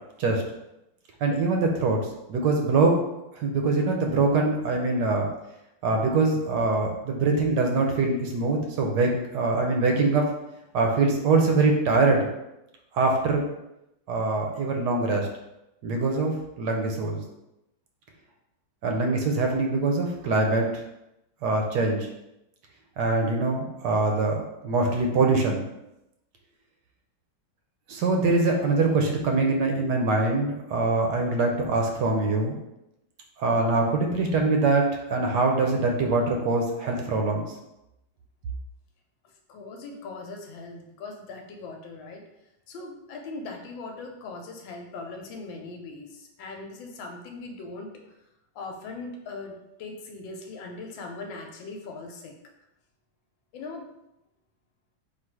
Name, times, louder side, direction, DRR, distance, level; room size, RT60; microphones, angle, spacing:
voice 1, 1.2-2.0 2.3-3.0 3.4-5.3 5.8-10.3 10.7-12.3 12.9-13.4 14.1-15.3 15.8-17.2 18.8-20.7 21.4-22.1 23.0-25.6 27.9-32.5 33.4-37.5, right 3 dB, 70° right, 2 dB, 1.1 m, -23 dB
voice 2, 39.2-42.2 42.7-47.9 48.5-52.4 53.5-53.9, left 3 dB, 85° left, 2 dB, 1.4 m, -40 dB
3.8 x 2.4 x 4.6 m, 0.90 s
omnidirectional pair, 2.1 m